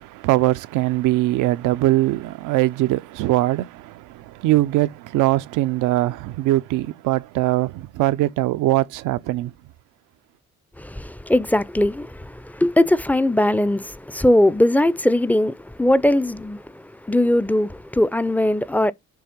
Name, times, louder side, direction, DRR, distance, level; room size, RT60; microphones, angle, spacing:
voice 1, 0.0-9.5, right 16 dB, 90° right, 0.5 m, -21 dB
voice 2, 10.8-18.9, left 1 dB, 5° left, 0.4 m, -20 dB
6.9 x 3.2 x 5.0 m
cardioid pair, 90°, 30 cm